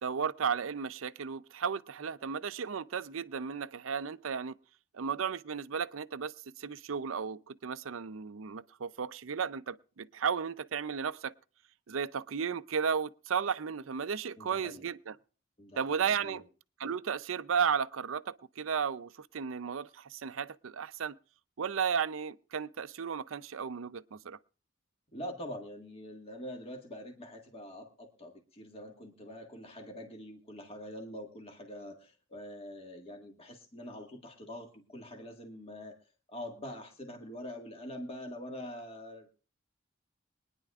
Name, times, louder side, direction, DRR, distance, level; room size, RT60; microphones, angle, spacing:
voice 1, 0.0-4.6 4.9-11.3 11.9-15.2 15.8-16.4 16.8-21.2 21.6-24.4, right 6 dB, 85° right, 0.6 m, -34 dB
voice 2, 14.4-14.9 15.6-16.4 25.1-36.0 36.3-39.3, left 1 dB, 30° left, 1.7 m, -45 dB
23.5 x 10.0 x 2.4 m
head